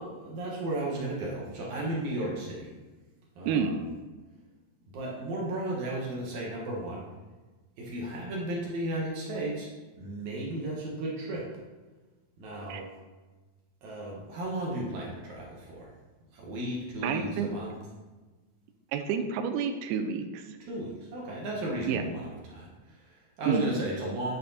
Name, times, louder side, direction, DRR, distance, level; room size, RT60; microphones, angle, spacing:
voice 1, 0.0-2.7 3.4-3.8 4.9-7.1 7.8-9.7 10.0-11.5 12.4-12.9 13.8-15.9 16.3-17.7 20.7-24.4, right 1 dB, 65° right, -3 dB, 2.2 m, -34 dB
voice 2, 3.5-3.8 12.7-12.8 17.0-17.6 18.9-20.4 21.9-22.0 23.5-23.6, right 7 dB, 80° right, 6 dB, 2.1 m, -29 dB
8.8 x 4.1 x 2.6 m, 1.2 s
omnidirectional pair, 4.0 m